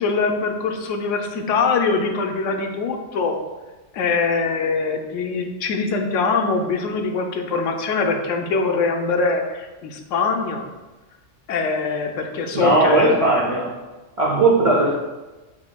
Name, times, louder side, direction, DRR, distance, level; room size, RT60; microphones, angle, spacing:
voice 1, 0.0-3.4 3.9-10.6 11.5-13.2, left 4 dB, 85° left, 4 dB, 0.9 m, -23 dB
voice 2, 12.5-13.7 14.2-14.9, right 2 dB, 45° right, -3 dB, 0.4 m, -17 dB
7.1 x 3.0 x 2.2 m, 1.2 s
omnidirectional pair, 1.3 m